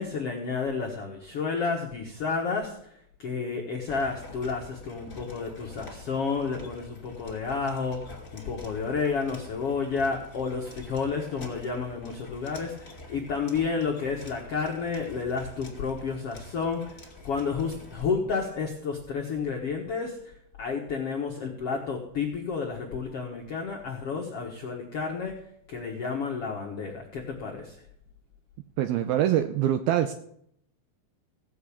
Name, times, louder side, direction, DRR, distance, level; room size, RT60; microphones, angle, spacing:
voice 1, 0.0-25.4 25.7-27.8, left 5 dB, 70° left, 0 dB, 1.4 m, -31 dB
sound 1, 3.9-18.1, left 3 dB, 20° left, 2.1 m, -46 dB
voice 2, 28.8-30.1, right 11 dB, 85° right, 9 dB, 2.2 m, -24 dB
17.5 x 5.9 x 8.5 m, 0.72 s
omnidirectional pair, 5.0 m